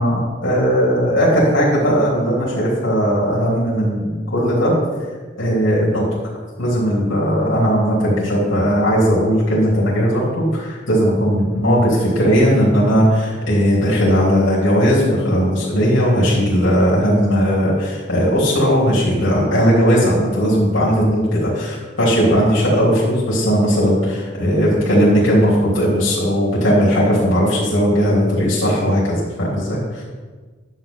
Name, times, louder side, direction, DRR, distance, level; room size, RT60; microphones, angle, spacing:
voice 1, 0.0-4.7 5.4-6.1 6.6-30.0, equal, 85° left, -7 dB, 3.3 m, -17 dB
10.5 x 7.2 x 4.0 m, 1.4 s
head